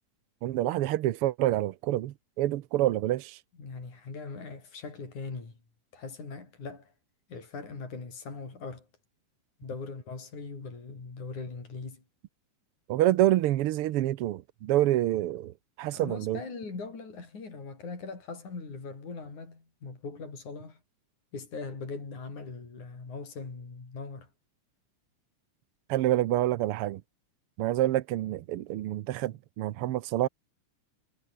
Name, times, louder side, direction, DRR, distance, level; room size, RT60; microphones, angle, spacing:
voice 1, 0.4-3.4 12.9-16.4 25.9-27.0 27.6-30.3, right 14 dB, 85° right, 1.2 m, -27 dB
voice 2, 3.6-5.6 5.9-6.9 7.3-8.9 9.6-12.0 15.9-20.8 21.3-24.3, left 4 dB, 70° left, 7.8 m, -40 dB
omnidirectional pair, 3.6 m